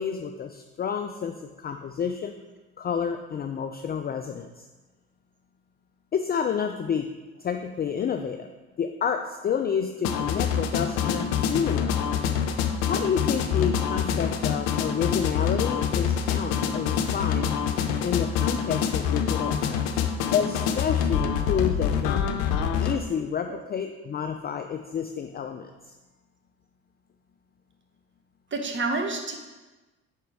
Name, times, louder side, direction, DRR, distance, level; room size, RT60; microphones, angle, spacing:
voice 1, 0.0-2.3 2.8-4.6 6.1-7.1 7.4-8.5 8.8-12.1 12.9-17.5 18.0-19.8 20.3-22.2 22.8-25.7, left 7 dB, 30° left, 6 dB, 0.4 m, -29 dB
sound 1, 10.0-23.0, left 7 dB, 75° left, 0.6 m, -26 dB
voice 2, 28.5-29.3, right 3 dB, 35° right, 4 dB, 1.1 m, -28 dB
5.1 x 4.6 x 4.8 m, 1.2 s
hypercardioid pair, 55°, 35 cm